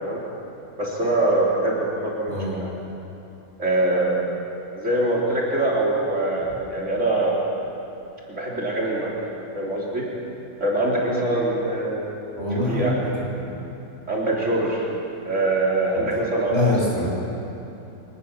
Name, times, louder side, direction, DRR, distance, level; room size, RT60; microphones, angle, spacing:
voice 1, 0.8-2.7 3.6-4.3 4.7-7.4 8.3-9.2 9.5-10.1 10.6-12.1 12.7-13.0 14.1-14.9 15.2-16.8, right 2 dB, 50° right, -4 dB, 4.1 m, -23 dB
voice 2, 12.3-13.6 16.5-17.1, left 2 dB, 45° left, -5 dB, 7.6 m, -24 dB
24.0 x 19.0 x 7.2 m, 2.9 s
omnidirectional pair, 1.6 m